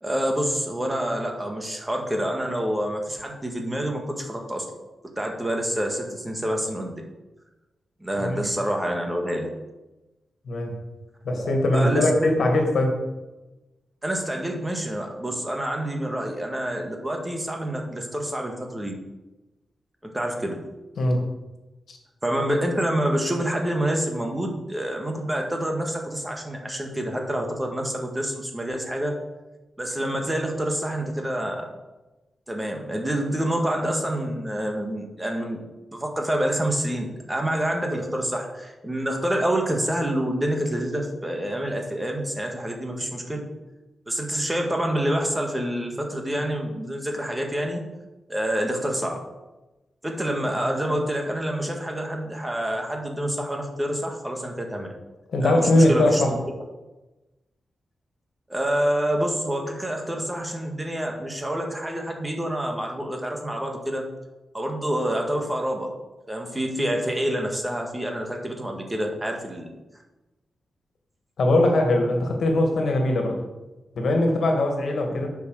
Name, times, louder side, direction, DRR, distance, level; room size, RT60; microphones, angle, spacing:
voice 1, 0.0-4.7 5.2-7.0 8.0-9.5 11.4-12.3 14.0-18.9 20.0-20.7 22.2-29.2 29.8-31.7 32.5-35.6 35.9-43.5 44.1-47.8 48.3-49.2 50.0-54.9 55.4-56.2 58.5-64.1 64.5-65.9 66.3-69.7, right 1 dB, 10° right, 2 dB, 1.8 m, -27 dB
voice 2, 11.2-13.0 21.0-21.2 21.9-22.0 55.3-56.3 71.4-73.4 74.0-75.3, left 1 dB, 65° left, 2 dB, 2.2 m, -21 dB
9.9 x 6.3 x 6.5 m, 1.1 s
wide cardioid pair, 130°, 0 cm